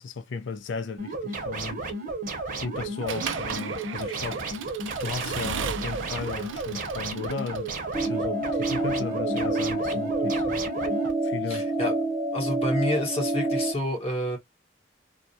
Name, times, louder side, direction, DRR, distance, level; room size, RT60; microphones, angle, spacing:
voice 1, 0.0-1.8 2.6-4.5 5.0-7.7 8.0-10.6 11.2-11.7, left 4 dB, 75° left, 0.4 m, -35 dB
sound 1, 1.0-11.1, right 3 dB, 50° right, 0.7 m, -33 dB
Accelerating revving vroom / Mechanisms, 3.1-8.0, right 7 dB, 80° right, 0.4 m, -36 dB
sound 2, 7.9-13.7, right 2 dB, 15° right, 0.4 m, -27 dB
voice 2, 11.5-11.9 12.3-14.4, left 1 dB, 30° left, 0.9 m, -28 dB
2.3 x 2.0 x 2.6 m
head